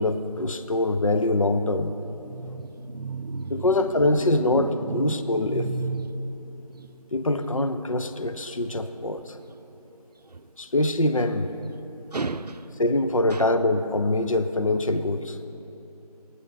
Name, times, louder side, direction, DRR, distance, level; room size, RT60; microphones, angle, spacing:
voice 1, 0.0-1.9 3.5-5.7 7.1-9.4 10.6-11.5 12.8-15.4, left 2 dB, 60° left, 10 dB, 0.6 m, -24 dB
voice 2, 2.3-3.7 4.5-6.4 12.1-12.6, right 3 dB, 85° right, 11 dB, 0.6 m, -32 dB
17.5 x 9.9 x 3.8 m, 3.0 s
figure-of-eight pair, 175°, 20 cm